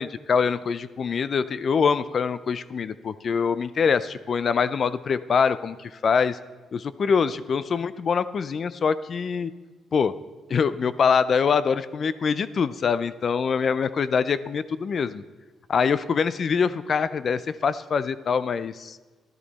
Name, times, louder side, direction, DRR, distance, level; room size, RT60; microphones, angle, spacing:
voice 1, 0.0-6.4 6.7-9.5 9.9-10.1 10.5-15.2 15.7-19.0, left 6 dB, 50° left, 15 dB, 0.4 m, -24 dB
12.0 x 11.5 x 4.1 m, 1.3 s
cardioid pair, 90°, 0 cm